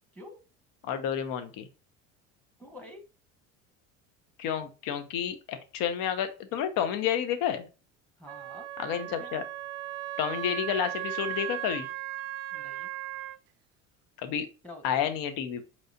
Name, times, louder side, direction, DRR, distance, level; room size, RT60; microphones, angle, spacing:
voice 1, 0.8-1.7 4.4-7.6 8.8-9.4 10.2-11.9 14.2-14.5 14.8-15.6, left 9 dB, 60° left, 9 dB, 0.9 m, -30 dB
voice 2, 2.6-3.0 8.2-9.3 12.5-12.9 14.6-15.0, left 1 dB, 5° left, 5 dB, 1.2 m, -48 dB
Wind instrument woodwind instrument, 8.3-13.4, right 14 dB, 75° right, 0.5 m, -37 dB
4.6 x 2.9 x 2.8 m, 0.32 s
hypercardioid pair, 75°, 39 cm